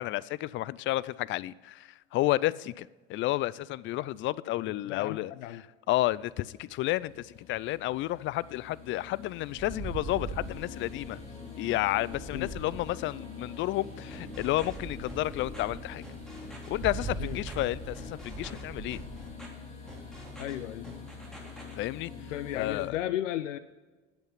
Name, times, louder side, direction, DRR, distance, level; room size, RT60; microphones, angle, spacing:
voice 1, 0.0-5.3 5.9-11.2 11.6-16.0 16.7-19.0 21.8-22.1 22.5-22.9, left 16 dB, 35° left, 21 dB, 0.4 m, -31 dB
voice 2, 4.7-5.6 12.3-12.5 17.2-17.4 20.4-20.9 22.3-23.6, left 13 dB, 80° left, 14 dB, 0.5 m, -35 dB
sound 1, 5.9-22.9, left 4 dB, 15° left, 3.2 m, -45 dB
sound 2, 9.6-13.6 14.3-20.6, right 3 dB, 35° right, 2.9 m, -41 dB
sound 3, 14.1-14.8 15.1-15.6 16.0-16.7 17.0-17.5 17.9-18.6 18.9-19.5 19.9-20.5 20.8-21.7, equal, ahead, 3.3 m, -48 dB
10.5 x 8.1 x 5.6 m, 1.3 s
hypercardioid pair, 85°, 37 cm